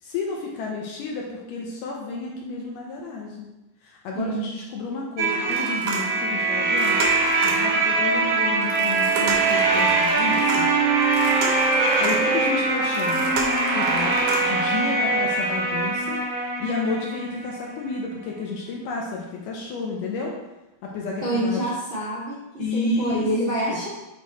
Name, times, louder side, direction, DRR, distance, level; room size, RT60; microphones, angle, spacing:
voice 1, 0.0-3.5 3.8-10.7 12.0-13.3 13.7-16.2 16.6-20.3 20.8-21.7 22.6-23.3 23.6-23.8, left 3 dB, 75° left, -1 dB, 2.1 m, -31 dB
voice 2, 4.1-4.5 21.2-23.9, right 1 dB, 30° right, -11 dB, 1.3 m, -27 dB
sound 1, 5.2-17.8, right 3 dB, 85° right, 2.9 m, -22 dB
sound 2, 5.5-6.4 6.7-7.7 8.6-12.4 12.8-14.6 15.1-15.2 15.6-15.7, right 3 dB, 70° right, 2.2 m, -32 dB
8.3 x 3.1 x 4.1 m, 1.0 s
omnidirectional pair, 4.2 m